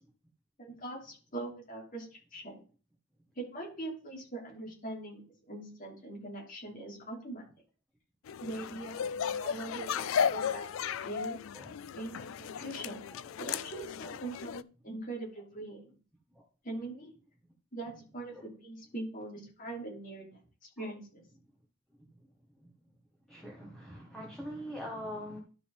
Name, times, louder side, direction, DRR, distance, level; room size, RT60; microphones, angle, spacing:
voice 1, 0.6-2.6 3.3-5.2 5.5-7.4 8.4-11.4 11.9-13.0 13.4-15.9 16.6-17.1 17.7-20.3 20.6-21.2, right 2 dB, 45° left, -2 dB, 3.3 m, -42 dB
sound 1, 8.3-14.6, left 7 dB, 80° left, 0.3 m, -35 dB
voice 2, 12.8-13.2 14.0-14.2 16.3-16.4 18.3-18.5 20.8-20.9 22.6-22.7 23.3-25.4, equal, 5° left, -3 dB, 1.6 m, -44 dB
12.0 x 5.1 x 3.6 m, 0.38 s
head